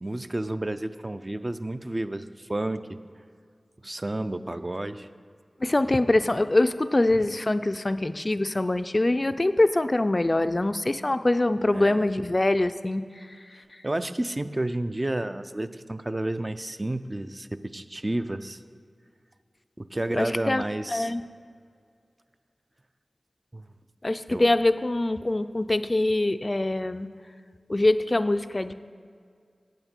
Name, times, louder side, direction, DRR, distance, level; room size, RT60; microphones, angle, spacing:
voice 1, 0.0-3.0 3.8-5.1 11.7-12.1 13.5-18.6 19.8-21.1 23.5-23.7 24.3-24.4, right 1 dB, 35° right, 10 dB, 0.4 m, -31 dB
voice 2, 5.6-13.4 13.7-13.8 20.1-20.6 20.9-21.2 24.0-27.1 27.7-28.7, left 2 dB, 40° left, 12 dB, 0.3 m, -24 dB
8.9 x 8.5 x 4.4 m, 2.1 s
cardioid pair, 40°, 0 cm